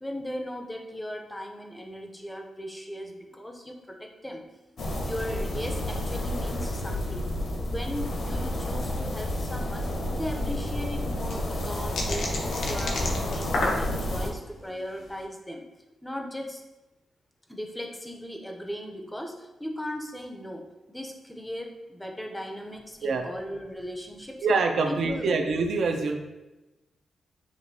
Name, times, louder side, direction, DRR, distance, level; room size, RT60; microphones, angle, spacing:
voice 1, 0.0-4.7 5.0-7.3 7.6-15.6 16.0-16.6 17.5-24.5 24.8-25.3, equal, 5° left, 3 dB, 0.5 m, -37 dB
sound 1, 4.8-14.3, left 1 dB, 55° left, 0.7 m, -30 dB
sound 2, 11.0-14.3 14.8-15.1, left 2 dB, 90° left, 0.7 m, -31 dB
voice 2, 24.4-26.2, right 3 dB, 65° right, 4 dB, 0.5 m, -25 dB
6.2 x 3.0 x 2.6 m, 1.1 s
wide cardioid pair, 155°, 0 cm